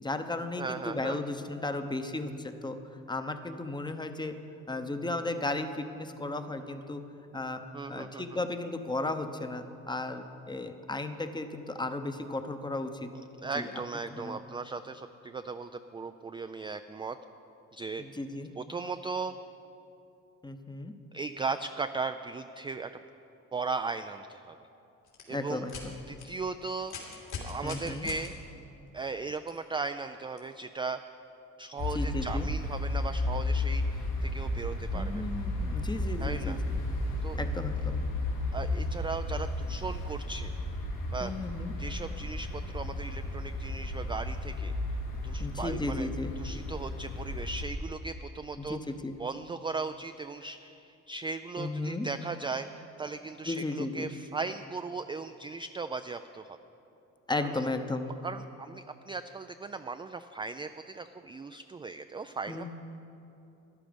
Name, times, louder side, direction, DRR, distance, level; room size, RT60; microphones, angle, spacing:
voice 1, 0.0-2.8 3.1-4.3 4.7-7.0 7.3-7.6 7.9-13.1 13.5-13.7 14.1-14.4 18.0-18.5 20.4-20.9 25.3-25.7 27.6-28.1 31.9-32.5 34.9-36.8 37.4-38.0 41.2-41.7 45.4-46.3 48.6-49.1 51.6-52.1 53.5-54.1 57.3-58.1 62.5-62.7, left 2 dB, 15° left, 8 dB, 0.8 m, -35 dB
voice 2, 0.6-1.2 7.7-8.4 13.4-17.2 17.7-18.0 18.6-19.3 21.1-22.9 23.5-24.6 25.3-25.7 26.1-26.9 27.4-28.3 28.9-31.0 31.6-35.2 36.2-36.6 37.2-37.4 38.5-40.5 41.1-41.3 41.8-44.7 45.2-46.1 46.4-48.8 49.2-52.7 53.0-56.6 57.4-57.5 58.2-62.7, right 4 dB, 15° right, 9 dB, 0.3 m, -37 dB
sound 1, 25.0-25.2 25.7-25.8 26.2-26.3 26.8-28.3 29.5-29.6 30.4-30.5, left 5 dB, 70° left, 3.1 m, -40 dB
sound 2, 31.8-47.6, left 2 dB, 90° left, 2.7 m, -33 dB
13.0 x 11.0 x 5.2 m, 2.8 s
cardioid pair, 80°, 31 cm